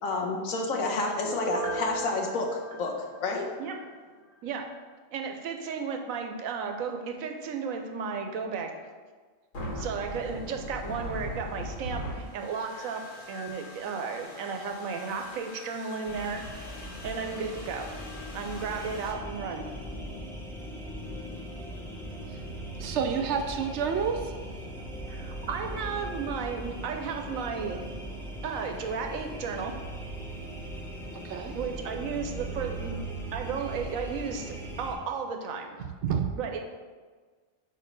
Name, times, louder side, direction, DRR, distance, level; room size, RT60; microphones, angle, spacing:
voice 1, 0.0-3.5, left 3 dB, 90° left, 1 dB, 1.3 m, -30 dB
Piano, 1.2-3.9 4.3-4.4, right 3 dB, 30° right, 0.9 m, -37 dB
voice 2, 5.1-8.7 9.8-17.9 18.3-19.7 25.1-27.8 28.4-29.7 31.5-33.0 33.3-35.8 36.4-36.6, right 5 dB, 90° right, 4 dB, 1.1 m, -34 dB
sound 1, 9.5-19.1, left 1 dB, 65° left, 1.7 m, -41 dB
sound 2, 16.1-34.9, right 1 dB, ahead, 0.6 m, -39 dB
voice 3, 22.8-24.3 31.2-31.6 36.0-36.4, right 7 dB, 65° right, 6 dB, 0.8 m, -29 dB
4.5 x 4.5 x 5.3 m, 1.5 s
omnidirectional pair, 1.4 m